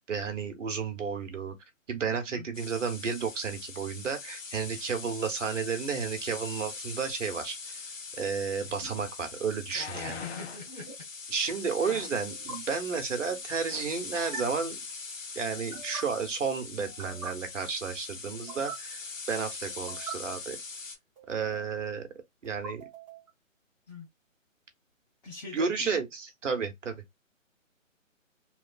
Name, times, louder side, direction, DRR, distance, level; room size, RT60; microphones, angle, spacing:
voice 1, 0.0-1.5 1.9-7.8 8.2-10.2 11.3-14.8 15.3-19.0 19.3-20.6 21.3-22.1 22.4-22.9 25.5-27.0, right 5 dB, 65° right, 1.1 m, -32 dB
voice 2, 2.1-2.5 9.7-11.0 23.9-24.1 25.2-26.0, left 4 dB, 30° left, 1.1 m, -44 dB
sound 1, 2.5-21.0, left 4 dB, 70° left, 1.2 m, -42 dB
sound 2, 8.6-8.9 10.7-10.9 12.3-12.6 14.1-14.4 15.5-16.0 16.8-17.3 18.3-18.8 19.7-20.1 21.2-21.7 22.4-23.3, right 4 dB, 25° right, 0.9 m, -43 dB
sound 3, 8.7-8.8 9.7-10.7 11.8-12.3 13.2-13.4 13.7-14.0 14.5-14.6, left 7 dB, 55° left, 0.6 m, -42 dB
3.2 x 2.3 x 2.3 m
figure-of-eight pair, 150°, 40 cm